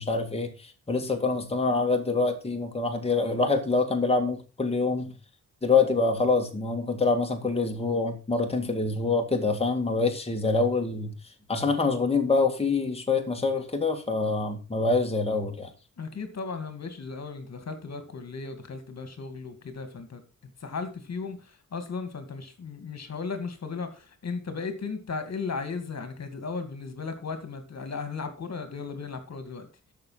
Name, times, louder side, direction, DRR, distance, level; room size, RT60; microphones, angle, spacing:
voice 1, 0.0-5.1 5.6-11.1 11.5-15.7, left 3 dB, 20° left, 2.1 m, -25 dB
voice 2, 16.0-29.7, left 4 dB, 60° left, 2.2 m, -36 dB
13.0 x 6.6 x 5.7 m
wide cardioid pair, 120°, 30 cm